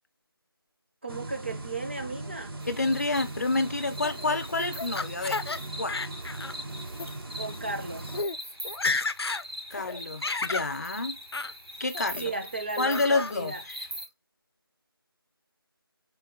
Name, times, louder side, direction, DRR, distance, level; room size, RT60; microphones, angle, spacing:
voice 1, 1.0-2.5 7.4-8.1 12.2-13.6, right 3 dB, 30° right, 0.4 m, -35 dB
sound 1, 1.1-8.2, right 2 dB, 70° right, 0.7 m, -39 dB
sound 2, 2.6-14.1, equal, 90° right, 2.5 m, -42 dB
voice 2, 2.7-5.4 5.7-5.9 9.7-11.2 11.8-12.3 12.8-13.8, left 3 dB, 45° left, 0.5 m, -28 dB
Laughter, 4.0-5.6 5.9-6.6 6.9-7.1 7.8-7.9 8.1-8.4 8.6-9.4 9.8-10.7 11.3-11.5 11.9-12.4 12.8-13.3, left 4 dB, 90° left, 0.5 m, -32 dB
3.8 x 2.2 x 4.3 m
figure-of-eight pair, 170°, 13 cm